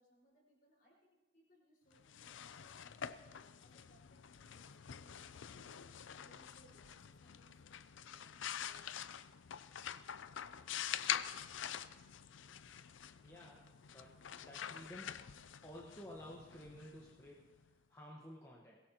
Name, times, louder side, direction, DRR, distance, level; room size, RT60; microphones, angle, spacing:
voice 1, 0.0-7.8 8.1-9.1 10.5-10.6, equal, 45° left, -3 dB, 5.5 m, -70 dB
sound 1, 2.0-17.6, left 9 dB, 80° left, 0.5 m, -46 dB
voice 2, 13.2-15.2 15.6-18.8, equal, 15° left, -4 dB, 1.3 m, -54 dB
22.5 x 17.0 x 3.0 m, 1.2 s
head